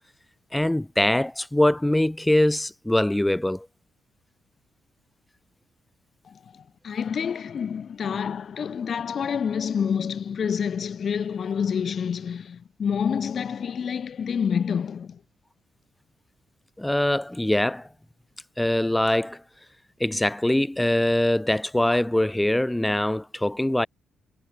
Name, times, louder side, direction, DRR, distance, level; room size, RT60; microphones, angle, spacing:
voice 1, 0.5-3.7 16.8-17.9 18.6-19.4 20.0-23.9, left 1 dB, 10° left, 4.5 m, -23 dB
voice 2, 6.2-15.2, left 7 dB, 50° left, 2.6 m, -28 dB
cardioid pair, 90°, 0 cm